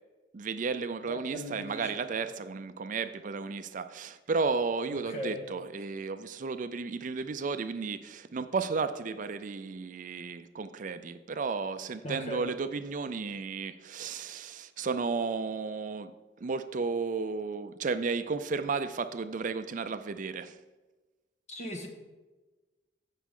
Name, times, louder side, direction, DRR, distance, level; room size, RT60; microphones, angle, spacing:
voice 1, 0.3-16.1 16.4-20.6, right 4 dB, 45° right, 11 dB, 0.4 m, -33 dB
voice 2, 1.1-2.1 4.9-5.4 12.0-12.5 21.5-21.9, left 1 dB, 40° left, 2 dB, 1.6 m, -39 dB
15.5 x 6.0 x 3.7 m, 1.2 s
head